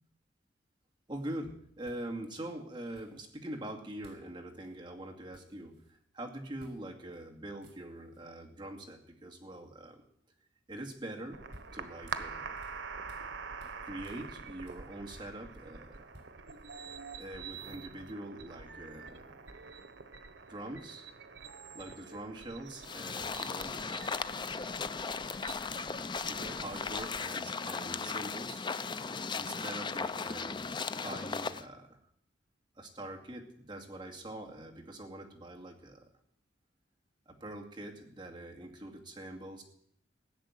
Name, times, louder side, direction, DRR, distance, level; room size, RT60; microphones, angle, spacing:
voice 1, 1.1-5.8 6.1-10.0 10.7-11.4 11.7-12.6 13.8-16.1 17.2-19.4 20.5-21.0 21.7-24.2 26.3-28.6 29.3-30.6 31.0-32.0 32.8-36.1 37.3-39.6, right 1 dB, 25° right, 0 dB, 2.4 m, -44 dB
sound 1, 1.2-1.3 1.8-2.4 2.9-3.6 4.0-4.3 4.6-4.8 5.1-6.0 6.6-6.8 7.1-7.2 7.5-8.2 11.1-13.3 13.6-15.6 15.9-17.6, right 1 dB, 70° right, 4.1 m, -59 dB
sound 2, 11.3-27.2, right 5 dB, 90° right, 1.1 m, -46 dB
sound 3, 22.8-31.6, left 5 dB, 25° left, 0.5 m, -37 dB
16.5 x 6.9 x 9.7 m, 0.70 s
head